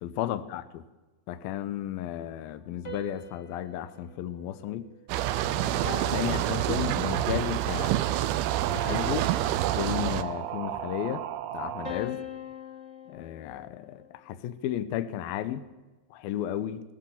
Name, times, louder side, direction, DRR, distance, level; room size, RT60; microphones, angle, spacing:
voice 1, 0.0-0.8 1.3-4.9 5.5-7.9 8.6-9.3 9.8-11.2 11.5-12.2 13.1-15.7 16.1-16.8, left 12 dB, 75° left, 12 dB, 2.3 m, -33 dB
sound 1, 2.8-5.3 5.8-7.3 8.8-10.3 11.8-14.2, left 4 dB, 35° left, 1.1 m, -43 dB
sound 2, 5.1-10.2, right 13 dB, 90° right, 3.3 m, -27 dB
sound 3, 7.0-7.5 8.4-11.9, right 11 dB, 75° right, 3.3 m, -36 dB
20.5 x 18.5 x 7.2 m, 1.1 s
omnidirectional pair, 5.3 m